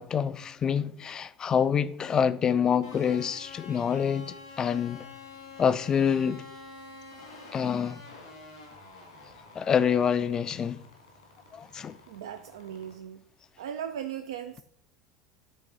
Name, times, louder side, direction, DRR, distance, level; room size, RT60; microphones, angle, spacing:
voice 1, 0.0-5.0 5.6-6.4 7.5-8.0 9.6-10.8 11.5-12.0, left 7 dB, 30° left, 0.4 m, -26 dB
sound 1, 2.8-12.9, left 4 dB, 80° left, 2.1 m, -48 dB
voice 2, 12.1-13.2 13.6-14.6, right 9 dB, 70° right, 0.4 m, -38 dB
9.0 x 3.8 x 3.8 m
figure-of-eight pair, 70°, 2 cm